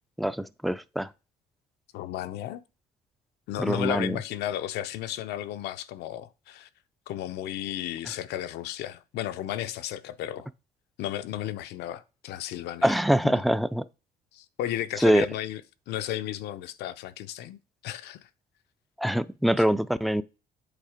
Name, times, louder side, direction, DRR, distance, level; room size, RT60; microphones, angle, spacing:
voice 1, 0.2-1.1 3.6-4.2 12.8-13.8 15.0-15.3 19.0-20.2, equal, ahead, 0.4 m, -24 dB
voice 2, 1.9-2.6 3.5-6.7 7.1-10.5 11.0-13.0 13.2-13.4 14.3-15.6 15.9-18.2, left 12 dB, 80° left, 0.6 m, -34 dB
8.3 x 3.4 x 4.9 m
cardioid pair, 110°, 17 cm